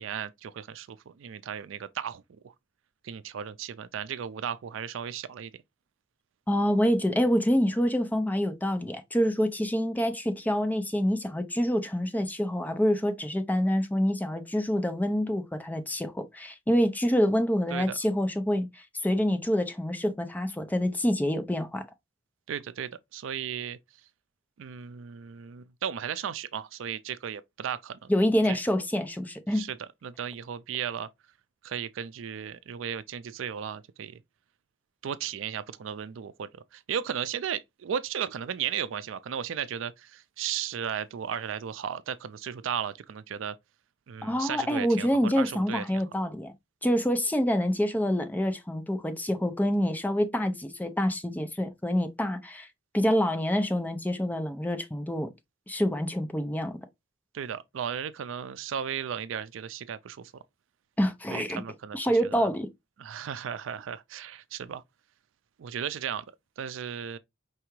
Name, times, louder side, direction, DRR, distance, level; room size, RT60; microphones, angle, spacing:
voice 1, 0.0-2.5 3.0-5.5 17.7-18.0 22.5-23.8 24.6-28.1 28.5-28.6 29.5-31.1 31.6-34.2 35.0-43.6 44.1-45.8 57.3-60.3 61.3-62.5 63.0-64.8 65.6-66.2 66.6-67.2, right 8 dB, 70° right, 0.4 m, -35 dB
voice 2, 6.5-21.8 28.1-29.7 44.2-46.5 46.8-52.7 52.9-55.3 55.7-56.8 61.0-61.6 61.9-62.7, equal, 10° left, 0.5 m, -27 dB
4.7 x 3.4 x 3.0 m
head